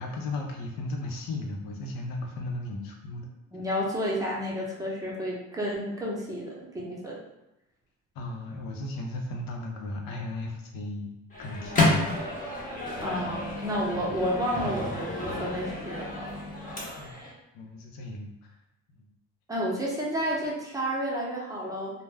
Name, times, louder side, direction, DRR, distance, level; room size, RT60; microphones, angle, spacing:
voice 1, 0.0-3.3 8.2-12.0 13.9-14.0 17.0-17.3 17.5-18.3 19.0-19.1, left 2 dB, 90° left, 1 dB, 0.6 m, -36 dB
voice 2, 3.5-7.2 13.0-16.4 19.5-21.9, equal, 10° right, -5 dB, 0.7 m, -31 dB
Microwave oven, 11.3-17.3, left 2 dB, 25° left, 0.7 m, -30 dB
2.1 x 2.1 x 3.3 m, 0.91 s
cardioid pair, 110°, 34 cm